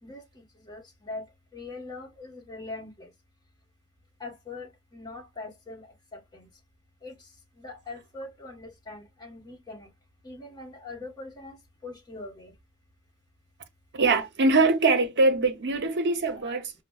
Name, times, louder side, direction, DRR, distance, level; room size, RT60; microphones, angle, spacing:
voice 1, 0.0-1.2 1.5-3.1 4.2-6.5 7.0-7.3 7.6-9.9 10.2-11.6 11.8-12.5, left 2 dB, 20° left, 1.2 m, -42 dB
voice 2, 13.9-16.7, right 3 dB, 55° right, 0.7 m, -23 dB
5.0 x 2.1 x 2.3 m
head